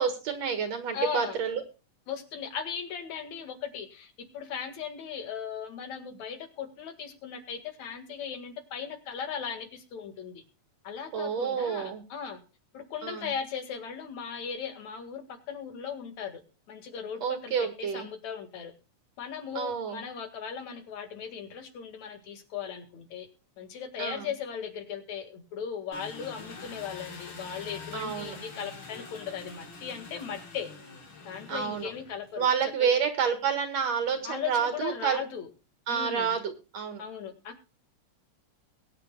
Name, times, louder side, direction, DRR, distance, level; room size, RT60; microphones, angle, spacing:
voice 1, 0.0-1.6 11.1-12.0 13.0-13.3 17.2-18.1 19.5-20.0 24.0-24.3 27.9-28.4 31.5-31.9 32.4-35.2 35.9-37.0, right 7 dB, 60° right, 8 dB, 2.8 m, -29 dB
voice 2, 0.9-1.4 2.1-10.4 10.8-12.4 12.7-16.4 16.7-18.7 19.2-23.3 23.6-30.7 31.2-32.5 32.8-32.9 34.2-35.5 35.9-36.3 37.0-37.6, left 7 dB, 65° left, 8 dB, 3.3 m, -38 dB
Engine, 25.9-32.4, left 4 dB, 45° left, 3.3 m, -45 dB
22.0 x 9.9 x 2.3 m, 0.32 s
omnidirectional pair, 3.5 m